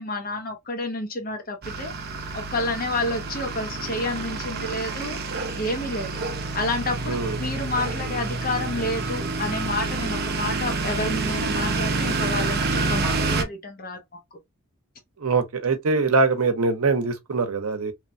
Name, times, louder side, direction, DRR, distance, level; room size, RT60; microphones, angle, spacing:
voice 1, 0.0-1.9 2.3-5.2 5.6-6.2 6.5-14.4, left 2 dB, 40° left, 0.6 m, -30 dB
sound 1, 1.6-13.4, right 3 dB, 45° right, 0.5 m, -28 dB
voice 2, 7.1-7.4 15.2-17.9, right 4 dB, 75° right, 0.7 m, -23 dB
3.1 x 2.1 x 2.5 m
head